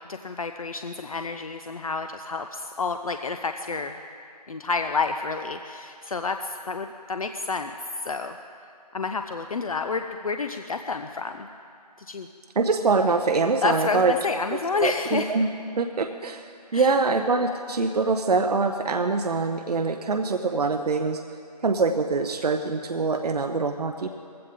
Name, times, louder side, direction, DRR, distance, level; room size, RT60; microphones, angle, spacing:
voice 1, 0.0-3.9 4.5-7.7 8.0-8.4 8.9-11.5 12.1-12.3 13.6-15.3 16.7-16.9, left 4 dB, 55° left, 7 dB, 0.6 m, -29 dB
voice 2, 12.6-14.1 14.5-15.5 15.8-21.2 21.6-24.1, right 4 dB, 65° right, 6 dB, 0.7 m, -24 dB
19.5 x 15.5 x 3.7 m, 2.4 s
figure-of-eight pair, 160°, 21 cm